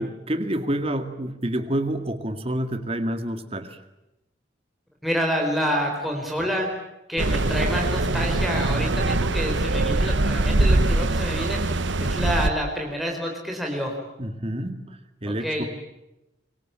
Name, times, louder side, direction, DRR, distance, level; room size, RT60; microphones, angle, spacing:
voice 1, 0.0-3.8 14.2-15.6, right 1 dB, 30° right, 9 dB, 2.0 m, -28 dB
voice 2, 5.0-6.7 7.1-13.9 15.4-15.7, equal, ahead, 0 dB, 4.4 m, -28 dB
sound 1, 7.2-12.5, right 2 dB, 80° right, 1.2 m, -22 dB
26.0 x 23.5 x 8.8 m, 0.94 s
head